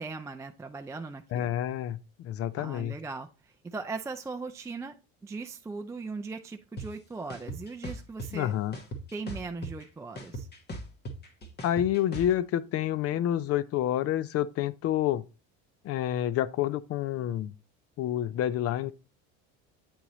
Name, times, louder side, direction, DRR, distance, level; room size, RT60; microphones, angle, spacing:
voice 1, 0.0-1.5 2.6-4.9 5.2-8.5 9.1-10.5, right 4 dB, 10° right, 0.3 m, -39 dB
voice 2, 1.3-3.0 8.3-8.8 11.6-15.2 15.8-17.5 18.0-18.9, left 11 dB, 45° left, 0.5 m, -28 dB
sound 1, 6.8-6.9 7.3-8.3 8.7-9.8 10.2-12.3, right 1 dB, 30° left, 1.3 m, -38 dB
8.6 x 2.9 x 4.0 m
supercardioid pair, 110°, 32 cm